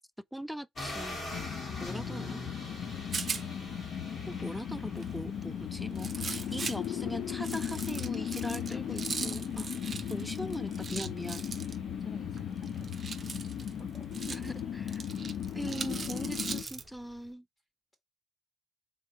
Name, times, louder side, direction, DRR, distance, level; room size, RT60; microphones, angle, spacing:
voice 1, 0.3-2.4 4.3-9.7 10.1-11.4 14.3-15.0 15.5-17.5, equal, ahead, 0.3 m, -41 dB
sound 1, 0.7-17.3, left 2 dB, 45° left, 2.6 m, -47 dB
sound 2, 1.3-16.6, left 9 dB, 70° left, 0.5 m, -37 dB
Rattle, 2.7-16.9, right 5 dB, 40° right, 0.6 m, -42 dB
voice 2, 11.9-13.1 13.8-14.1 15.6-16.3, left 1 dB, 25° left, 1.8 m, -50 dB
3.7 x 2.8 x 4.2 m
cardioid pair, 90°, 0 cm